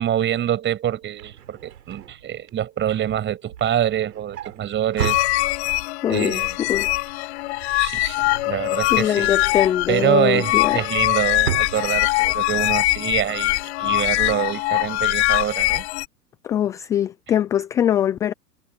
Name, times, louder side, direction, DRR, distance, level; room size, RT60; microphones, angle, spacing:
voice 1, 0.0-5.2 6.1-6.6 7.8-15.8, right 10 dB, 20° right, 6.9 m, -25 dB
Drawer open or close, 0.9-5.9 6.3-6.6 6.9-9.1 9.5-12.5 12.9-13.1 13.3-13.4, right 10 dB, 65° right, 5.6 m, -36 dB
sound 1, 5.0-16.1, left 20 dB, 40° left, 1.1 m, -22 dB
voice 2, 6.0-6.4 6.7-6.9 8.9-10.8 16.5-18.3, left 10 dB, 5° left, 0.4 m, -22 dB
hypercardioid pair, 120°, 50 cm